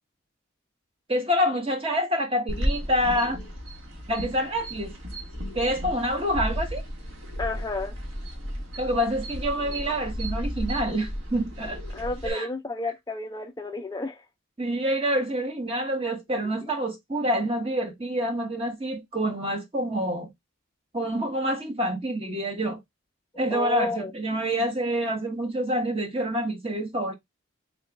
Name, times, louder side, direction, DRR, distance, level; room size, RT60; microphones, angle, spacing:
voice 1, 1.1-3.4 4.1-4.9 5.5-6.8 8.8-11.8 12.2-12.5 14.6-20.3 20.9-22.8 23.4-27.1, equal, 25° right, 1.0 m, -27 dB
sound 1, 2.5-12.3, equal, 70° right, 1.5 m, -33 dB
voice 2, 7.4-7.9 11.9-14.2 23.5-24.1, left 2 dB, 15° left, 0.4 m, -31 dB
3.9 x 2.3 x 3.3 m
head